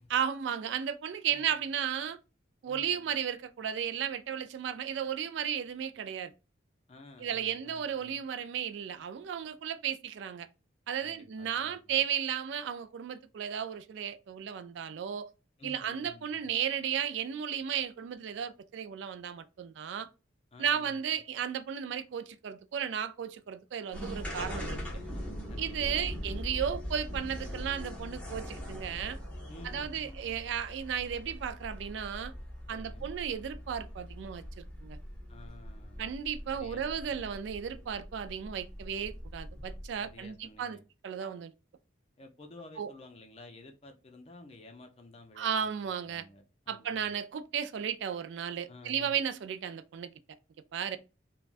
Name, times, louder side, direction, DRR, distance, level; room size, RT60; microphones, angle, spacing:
voice 1, 0.1-2.2 2.6-6.3 7.2-10.5 10.9-15.3 15.6-20.1 20.6-24.8 25.6-29.2 29.6-32.3 32.7-34.4 34.8-35.0 36.0-40.8 41.0-41.5 42.8-42.9 45.4-46.2 46.7-50.1 50.7-51.0, right 8 dB, 70° right, 0.3 m, -34 dB
voice 2, 1.3-1.7 2.7-3.2 6.9-8.2 11.0-12.0 15.6-16.5 20.5-21.1 24.6-26.5 29.5-30.4 32.7-33.1 35.3-36.2 36.5-37.3 40.0-40.8 42.2-47.1 48.7-49.2, left 2 dB, 30° left, 0.5 m, -53 dB
sound 1, 23.9-40.1, equal, 5° left, 0.8 m, -41 dB
3.3 x 2.2 x 2.4 m
head